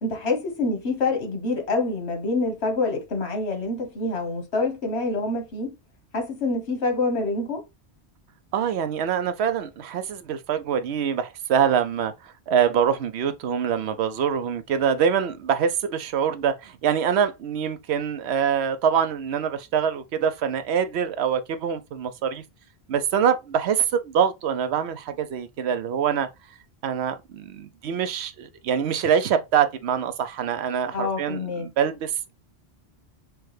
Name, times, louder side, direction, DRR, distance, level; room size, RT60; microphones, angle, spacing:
voice 1, 0.0-5.7 6.1-7.6 30.9-31.7, left 3 dB, 80° left, 1.5 m, -26 dB
voice 2, 8.5-22.4 22.9-26.3 26.8-32.1, right 8 dB, 80° right, 0.9 m, -24 dB
6.1 x 2.2 x 3.1 m
omnidirectional pair, 1.1 m